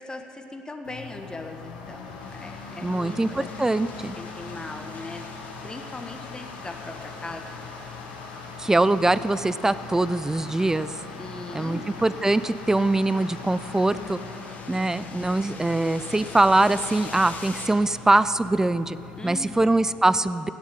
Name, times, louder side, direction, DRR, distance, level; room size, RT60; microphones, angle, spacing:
voice 1, 0.0-3.5 4.1-5.2 5.6-7.6 11.2-11.9 19.2-19.7, left 2 dB, 20° left, 4 dB, 1.3 m, -39 dB
sound 1, 0.8-19.8, left 4 dB, 80° left, 1.5 m, -41 dB
sound 2, 2.2-17.7, left 4 dB, 45° left, 1.8 m, -46 dB
voice 2, 2.8-4.2 8.6-10.9 11.5-14.2 14.7-19.0 19.2-20.5, right 2 dB, 10° right, 15 dB, 0.5 m, -23 dB
17.0 x 7.3 x 7.3 m, 2.8 s
hypercardioid pair, 55°, 4 cm